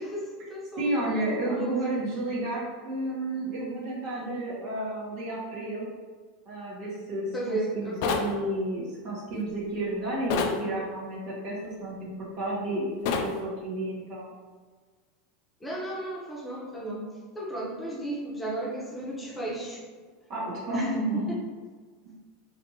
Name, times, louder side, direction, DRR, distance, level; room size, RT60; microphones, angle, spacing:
voice 1, 0.0-1.8 7.3-8.3 15.6-17.1 17.3-19.8 20.7-21.4, right 1 dB, 10° left, -5 dB, 0.9 m, -34 dB
voice 2, 0.8-5.9 6.5-14.3 20.3-21.3, right 1 dB, 55° right, -7 dB, 1.1 m, -31 dB
sound 1, 8.0-8.3 10.3-10.6 13.1-13.3, left 5 dB, 65° left, 0.4 m, -26 dB
3.3 x 2.8 x 2.8 m, 1.5 s
supercardioid pair, 115°, 0 cm